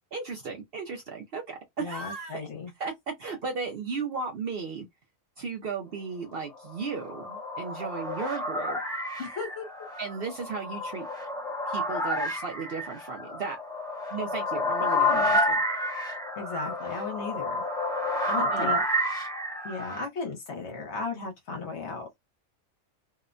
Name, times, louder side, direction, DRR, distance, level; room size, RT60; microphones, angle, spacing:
voice 1, 0.1-2.5 2.8-4.9 5.4-8.8 10.0-11.1 11.7-13.6 14.1-15.6 18.5-18.7, right 5 dB, 60° right, 0.6 m, -35 dB
voice 2, 1.8-2.7 9.2-9.7 14.8-15.4 16.4-17.6 18.3-18.8 19.6-22.2, left 4 dB, 60° left, 1.1 m, -36 dB
sound 1, 6.6-20.1, left 1 dB, 5° left, 0.6 m, -30 dB
2.7 x 2.1 x 2.4 m
omnidirectional pair, 1.4 m